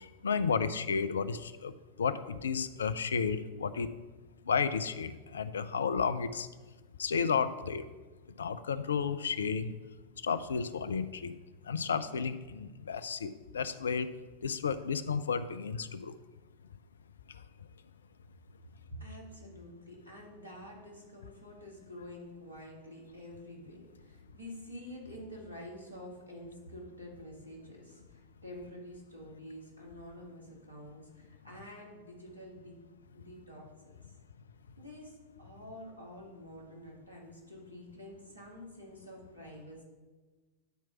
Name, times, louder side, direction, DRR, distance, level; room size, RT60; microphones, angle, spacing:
voice 1, 0.0-3.9 4.4-6.5 7.0-7.9 8.4-9.7 10.2-11.4 11.6-14.1 14.4-16.2, left 6 dB, 70° left, 13 dB, 0.4 m, -32 dB
voice 2, 18.9-32.8 33.1-33.9 34.8-39.8, left 1 dB, 80° right, -1 dB, 2.1 m, -48 dB
9.2 x 4.5 x 5.8 m, 1.3 s
figure-of-eight pair, 90°, 0 cm